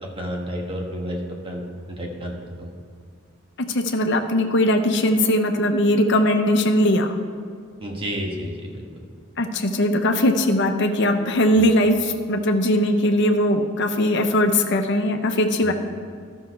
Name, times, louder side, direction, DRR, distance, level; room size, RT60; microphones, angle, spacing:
voice 1, 0.0-1.6 1.9-2.7 7.8-8.8 11.5-11.7 15.6-15.7, equal, 25° right, 0 dB, 1.3 m, -31 dB
voice 2, 3.6-7.1 9.4-15.7, left 1 dB, 60° left, 5 dB, 0.8 m, -20 dB
13.0 x 6.3 x 4.6 m, 2.1 s
head